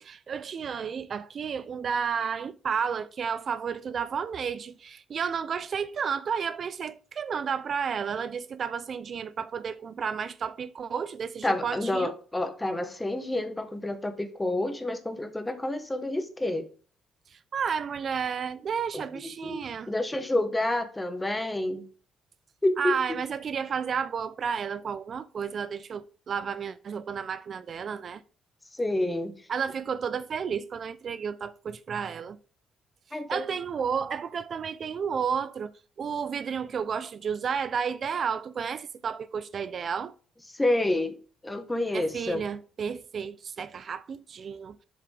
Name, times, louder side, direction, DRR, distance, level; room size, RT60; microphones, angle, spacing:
voice 1, 0.0-12.1 17.3-19.9 22.8-28.2 29.5-32.4 33.3-35.7 36.0-40.1 41.9-44.8, right 6 dB, 50° right, 0.4 m, -32 dB
voice 2, 11.4-16.6 18.9-21.8 22.6-22.9 28.7-29.3 33.1-33.5 40.5-41.1 41.4-42.4, left 1 dB, 15° left, 1.1 m, -29 dB
7.1 x 4.8 x 3.3 m
cardioid pair, 90°, 0 cm